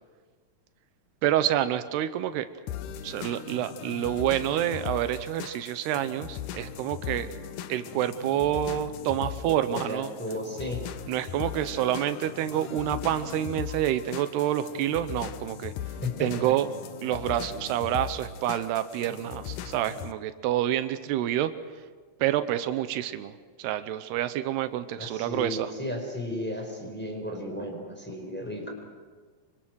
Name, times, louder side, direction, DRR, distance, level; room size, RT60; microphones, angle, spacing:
voice 1, 1.2-2.5 3.0-7.3 7.7-10.1 11.1-15.7 16.2-16.7 17.0-21.5 22.2-23.3 23.6-25.7, right 12 dB, 85° right, 11 dB, 3.0 m, -28 dB
sound 1, 2.7-20.1, left 10 dB, 70° left, 2.0 m, -39 dB
voice 2, 9.5-10.8 16.0-16.5 17.1-17.2 25.0-28.7, left 1 dB, 5° left, 1 dB, 4.2 m, -34 dB
27.0 x 25.0 x 6.3 m, 1.5 s
omnidirectional pair, 4.6 m